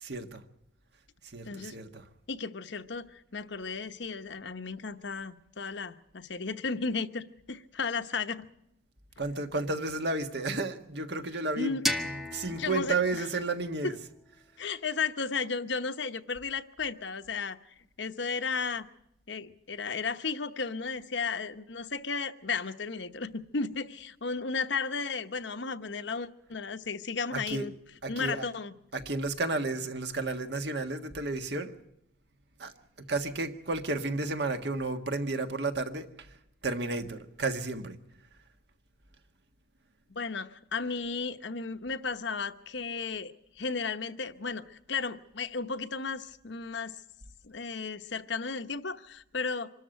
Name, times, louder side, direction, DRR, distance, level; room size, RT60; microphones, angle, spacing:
voice 1, 0.0-0.4 1.3-2.1 9.2-11.7 12.0-14.0 27.3-27.7 28.0-28.5 28.9-31.7 32.6-32.7 33.1-36.1 36.6-38.0, right 3 dB, 60° right, 1.6 m, -32 dB
voice 2, 2.3-8.5 11.6-11.8 12.5-13.3 13.8-13.9 14.6-17.6 18.0-18.9 19.3-27.7 28.1-28.7 40.1-46.9 47.4-49.7, left 4 dB, 70° left, 1.0 m, -34 dB
sound 1, 11.8-14.7, left 1 dB, ahead, 0.9 m, -36 dB
25.0 x 13.5 x 9.1 m
head